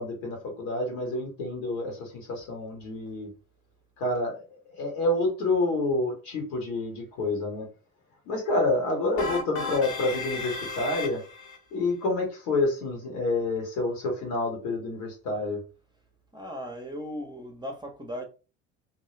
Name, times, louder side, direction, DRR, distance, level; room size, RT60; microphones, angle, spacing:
voice 1, 0.0-3.3 4.0-7.7 8.2-11.2 11.7-15.6, left 2 dB, 75° left, 1.4 m, -28 dB
sound 1, 9.2-11.6, left 4 dB, 45° left, 0.9 m, -34 dB
voice 2, 16.3-18.2, equal, 10° right, 0.8 m, -37 dB
2.7 x 2.3 x 3.1 m
hypercardioid pair, 65°, 39 cm